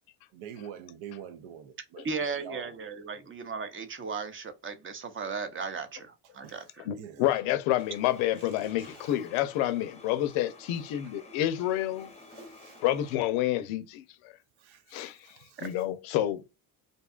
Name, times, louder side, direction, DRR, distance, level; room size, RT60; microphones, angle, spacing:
voice 1, 0.3-2.8 3.1-3.3 6.4-6.6 6.9-7.3 8.6-9.2 12.3-12.8 14.6-15.7, right 8 dB, 80° right, 0.6 m, -46 dB
voice 2, 2.0-6.9 15.6-15.7, right 5 dB, 25° right, 0.6 m, -36 dB
voice 3, 6.8-12.1 12.8-14.3 14.9-16.4, left 13 dB, 90° left, 0.6 m, -29 dB
sound 1, 7.8-13.2, left 3 dB, 15° left, 0.7 m, -51 dB
2.7 x 2.2 x 2.3 m
cardioid pair, 95°, 46 cm